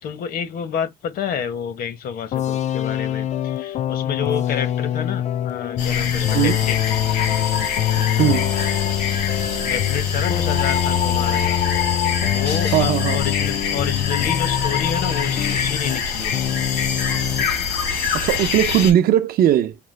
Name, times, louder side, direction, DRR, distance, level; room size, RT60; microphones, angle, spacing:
voice 1, 0.0-6.8 9.6-11.6 12.2-16.4, left 7 dB, 60° left, 1.0 m, -29 dB
sound 1, 2.3-16.0 16.3-17.5, left 11 dB, 45° left, 0.4 m, -24 dB
sound 2, 5.8-18.9, left 6 dB, 85° left, 2.8 m, -25 dB
voice 2, 8.2-8.5 12.7-13.2 18.1-19.7, right 11 dB, 60° right, 0.6 m, -18 dB
5.8 x 2.0 x 3.2 m
cardioid pair, 110°, 17 cm